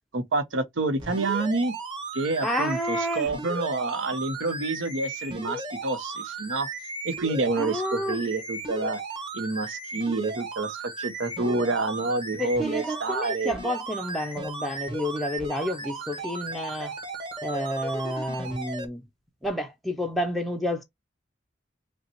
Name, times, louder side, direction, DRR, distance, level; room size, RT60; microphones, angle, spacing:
voice 1, 0.1-1.7 2.1-6.7 7.0-9.0 9.3-13.6, right 3 dB, 85° right, 0.8 m, -28 dB
sound 1, 1.0-18.9 19.4-19.5, right 2 dB, 25° right, 1.1 m, -36 dB
voice 2, 2.4-3.3 7.6-8.2 11.4-11.6 12.4-17.0 17.4-19.0 19.4-20.8, equal, ahead, 0.4 m, -30 dB
5.2 x 2.2 x 2.9 m
head